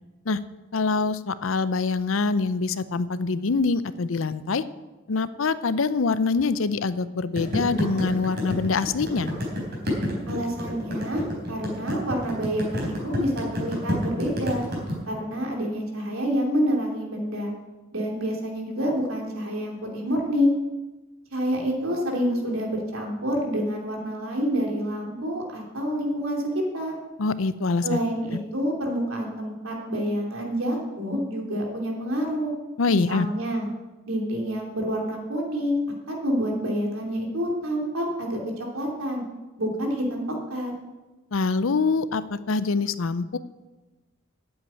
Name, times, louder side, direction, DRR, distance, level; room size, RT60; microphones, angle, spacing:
voice 1, 0.7-4.6 5.1-9.3 27.2-28.0 32.8-33.3 41.3-43.4, left 4 dB, 70° left, 14 dB, 0.6 m, -24 dB
sound 1, 7.4-14.9, left 1 dB, 55° right, 4.0 m, -29 dB
voice 2, 10.3-11.2 11.5-14.6 15.1-17.5 17.9-20.5 21.3-26.9 27.8-32.5 32.9-33.7 34.1-35.8 36.1-39.2 39.6-40.2 40.5-40.7, equal, 85° right, 0 dB, 3.1 m, -27 dB
8.8 x 8.0 x 9.3 m, 1.1 s
head